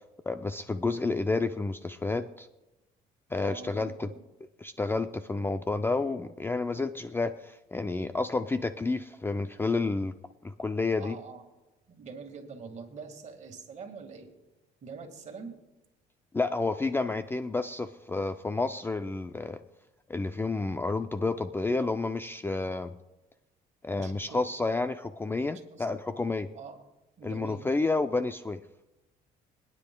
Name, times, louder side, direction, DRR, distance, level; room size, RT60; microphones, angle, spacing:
voice 1, 0.3-2.5 3.3-4.1 4.6-10.1 10.4-11.2 16.3-19.6 20.1-22.9 23.8-26.5 27.2-28.6, left 3 dB, 15° left, 9 dB, 0.4 m, -30 dB
voice 2, 3.4-4.2 11.0-11.5 11.9-14.3 14.8-15.5 23.9-24.4 25.7-25.9 26.5-26.8 27.2-27.6, right 5 dB, 45° right, 4 dB, 1.8 m, -44 dB
25.0 x 9.8 x 2.2 m, 1.0 s
cardioid pair, 110°, 17 cm